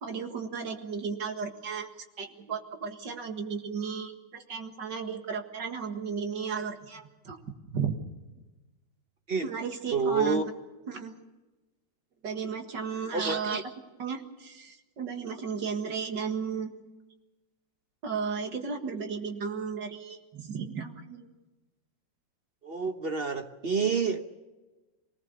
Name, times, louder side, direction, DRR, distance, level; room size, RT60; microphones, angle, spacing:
voice 1, 0.0-1.9 2.2-8.0 9.4-10.4 10.9-11.1 12.2-13.7 14.0-16.7 18.0-21.3, right 6 dB, 65° right, 5 dB, 2.4 m, -34 dB
voice 2, 9.9-10.4 13.1-13.6 22.6-24.2, right 5 dB, 40° right, 7 dB, 0.9 m, -28 dB
24.5 x 19.0 x 6.9 m, 1.1 s
omnidirectional pair, 2.1 m